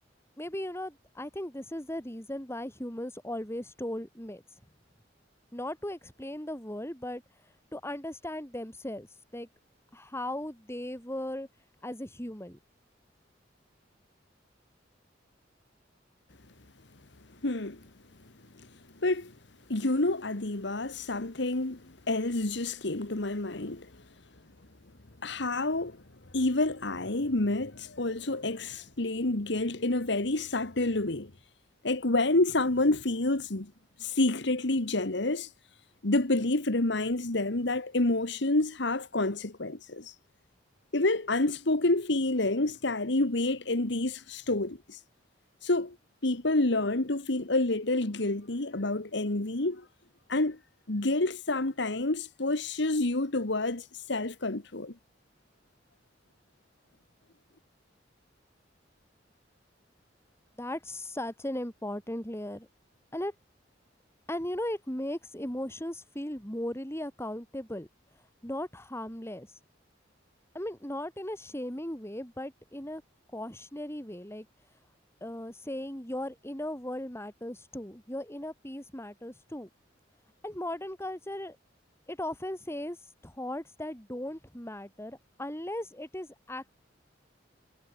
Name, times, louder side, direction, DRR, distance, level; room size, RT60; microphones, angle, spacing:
voice 1, 0.4-4.4 5.5-7.2 7.7-9.1 9.3-9.5 9.9-11.5 11.8-12.6 60.6-62.7 63.1-63.3 64.3-67.9 68.4-69.5 70.5-73.0 73.3-74.5 75.2-79.7 80.4-81.6 82.1-83.0 83.2-86.7, left 1 dB, 15° left, 6.6 m, -37 dB
voice 2, 17.4-17.8 18.5-18.7 19.0-19.3 19.7-24.0 25.2-26.0 26.3-31.3 31.8-33.7 34.0-35.5 36.0-40.1 40.9-45.0 45.6-46.0 46.2-49.8 50.3-50.6 50.9-54.9, left 2 dB, 65° left, 1.7 m, -28 dB
head